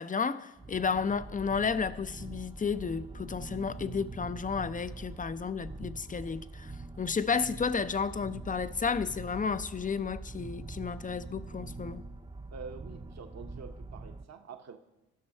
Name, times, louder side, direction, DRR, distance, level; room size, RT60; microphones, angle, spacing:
voice 1, 0.0-6.7 7.0-12.0, left 5 dB, 20° left, 0.5 m, -32 dB
sound 1, 0.6-14.2, right 3 dB, 15° right, 0.7 m, -44 dB
voice 2, 12.5-14.8, right 5 dB, 45° right, 0.9 m, -46 dB
12.0 x 6.1 x 5.5 m
hypercardioid pair, 40°, 39 cm